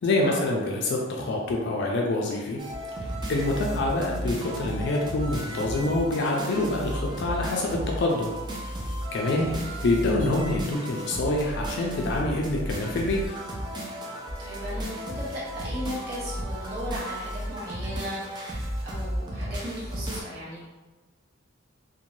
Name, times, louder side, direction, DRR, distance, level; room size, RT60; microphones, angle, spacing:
voice 1, 0.0-2.6 3.0-8.3 8.8-9.5 9.8-13.2, left 2 dB, 55° left, -1 dB, 0.3 m, -26 dB
sound 1, 2.6-20.2, equal, 20° right, 0.4 m, -34 dB
voice 2, 14.4-20.7, equal, 50° right, -8 dB, 0.8 m, -37 dB
2.6 x 2.2 x 3.0 m, 1.2 s
head